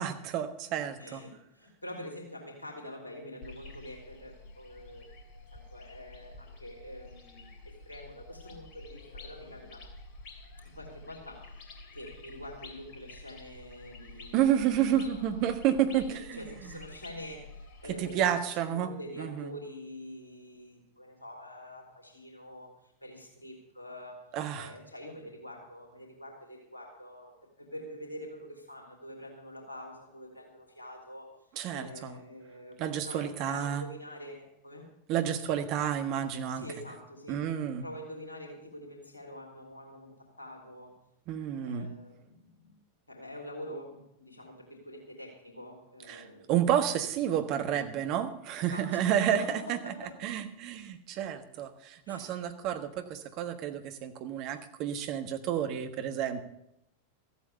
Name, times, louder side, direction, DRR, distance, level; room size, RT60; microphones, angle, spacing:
voice 1, 0.0-1.2 14.3-16.4 17.9-18.9 19.2-19.5 24.3-24.7 31.6-32.1 32.8-33.8 35.1-36.6 37.3-37.8 41.3-41.9 46.1-49.8 50.2-56.4, right 10 dB, 40° right, 8 dB, 1.3 m, -30 dB
voice 2, 1.0-5.1 5.5-9.9 10.7-11.4 11.9-14.5 14.7-15.5 16.3-24.2 24.5-27.3 27.6-31.3 31.7-34.9 36.5-37.4 37.8-40.9 41.6-42.8 43.1-46.5 48.6-50.3 52.1-52.4, left 1 dB, 80° left, 0 dB, 3.0 m, -46 dB
sound 1, 3.4-18.1, left 3 dB, 40° left, 2.8 m, -49 dB
14.0 x 8.4 x 6.8 m, 0.79 s
figure-of-eight pair, 90°, 0 cm